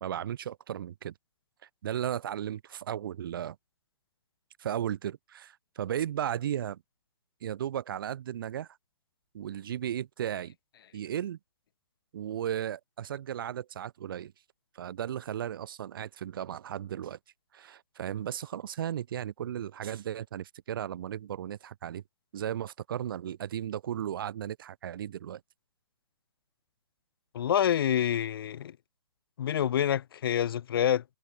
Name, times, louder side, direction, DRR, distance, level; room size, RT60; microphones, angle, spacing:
voice 1, 0.0-1.1 1.8-3.6 4.6-6.8 7.4-8.7 9.3-10.5 10.9-11.4 12.1-14.3 14.7-17.2 17.5-22.0 22.3-25.4, right 10 dB, 45° right, 0.5 m, -35 dB
voice 2, 27.3-28.8 29.4-31.0, left 10 dB, 50° left, 0.5 m, -27 dB
hypercardioid pair, 165°, 16 cm